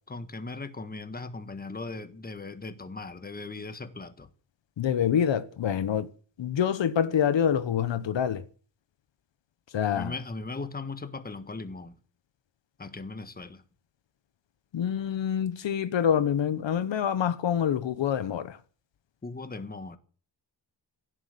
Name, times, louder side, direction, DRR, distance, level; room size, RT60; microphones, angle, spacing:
voice 1, 0.1-4.3 9.9-11.9 12.8-13.6 19.2-20.0, left 3 dB, 20° left, 1.4 m, -38 dB
voice 2, 4.8-6.1 6.4-8.4 9.7-10.1 14.7-18.6, left 8 dB, 75° left, 1.1 m, -26 dB
16.5 x 7.9 x 9.3 m
wide cardioid pair, 150°, 44 cm